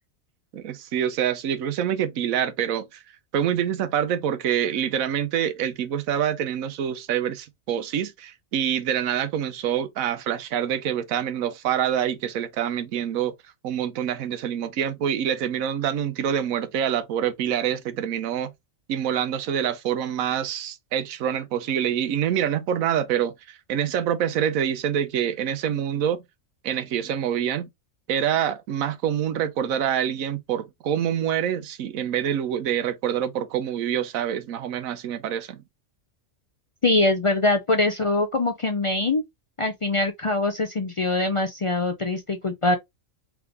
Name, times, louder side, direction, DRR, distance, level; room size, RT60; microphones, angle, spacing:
voice 1, 0.5-3.0 3.3-13.3 13.6-18.5 18.9-26.2 26.6-27.7 28.1-35.6, right 9 dB, 90° right, 1.1 m, -26 dB
voice 2, 36.8-39.2 39.6-42.8, left 2 dB, 50° left, 0.3 m, -23 dB
3.6 x 3.5 x 3.3 m
omnidirectional pair, 1.4 m